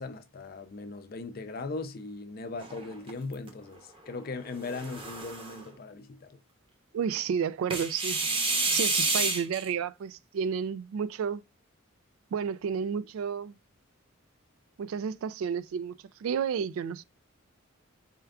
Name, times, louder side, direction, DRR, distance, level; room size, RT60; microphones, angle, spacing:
voice 1, 0.0-6.4, left 3 dB, 45° left, 0.4 m, -39 dB
sound 1, 2.6-3.5 4.5-5.6 7.7-9.7, right 3 dB, 25° right, 0.7 m, -29 dB
voice 2, 6.9-8.2 8.7-11.4 12.3-13.5 14.8-15.9 16.2-17.0, right 7 dB, 75° right, 0.3 m, -31 dB
4.3 x 2.4 x 3.4 m
head